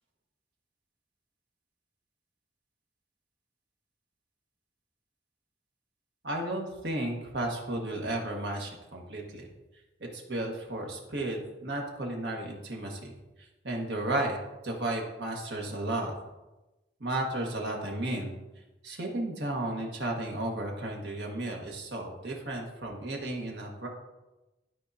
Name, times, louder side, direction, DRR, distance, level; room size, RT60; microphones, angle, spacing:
voice 1, 6.2-9.5 10.0-13.1 13.6-14.4 14.6-16.1 17.0-18.3 18.8-23.9, right 1 dB, 75° right, 0 dB, 1.5 m, -33 dB
12.0 x 4.7 x 2.7 m, 1.0 s
head